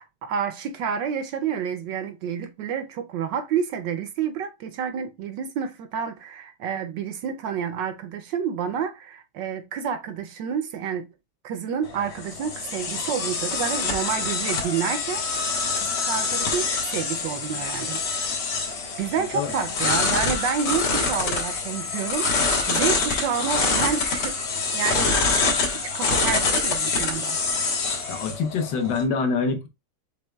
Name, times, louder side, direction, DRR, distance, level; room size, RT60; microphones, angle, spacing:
voice 1, 0.0-11.1 11.4-15.3 15.8-18.4 19.0-24.4 24.7-25.1 25.7-27.4, right 7 dB, 70° right, 1.1 m, -29 dB
sound 1, 11.8-29.0, left 4 dB, 85° left, 2.4 m, -25 dB
voice 2, 28.1-29.7, left 4 dB, 65° left, 1.3 m, -25 dB
6.9 x 3.5 x 2.2 m
omnidirectional pair, 2.4 m